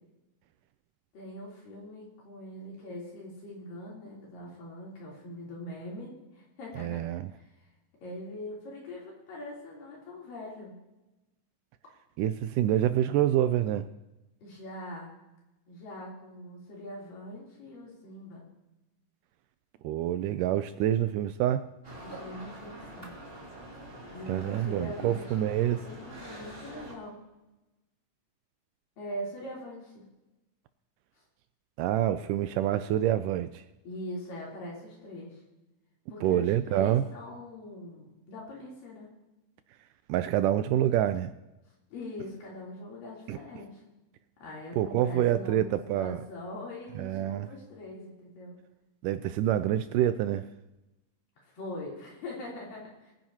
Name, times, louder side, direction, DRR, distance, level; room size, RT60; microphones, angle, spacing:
voice 1, 1.1-7.0 8.0-10.7 14.4-15.1 15.7-18.5 22.0-23.1 24.1-27.2 29.0-30.0 33.8-35.4 36.1-39.1 41.9-43.8 44.4-48.6 51.4-53.1, left 1 dB, 75° left, -4 dB, 5.1 m, -42 dB
voice 2, 6.8-7.3 12.2-13.9 19.8-21.7 24.3-25.8 31.8-33.6 36.2-37.0 40.1-41.3 43.3-43.4 44.8-46.2 47.0-47.5 49.0-50.5, right 12 dB, 80° right, 11 dB, 2.0 m, -27 dB
sound 1, 21.8-26.9, right 1 dB, 20° right, 2.2 m, -45 dB
22.5 x 10.5 x 2.9 m, 1.0 s
omnidirectional pair, 4.0 m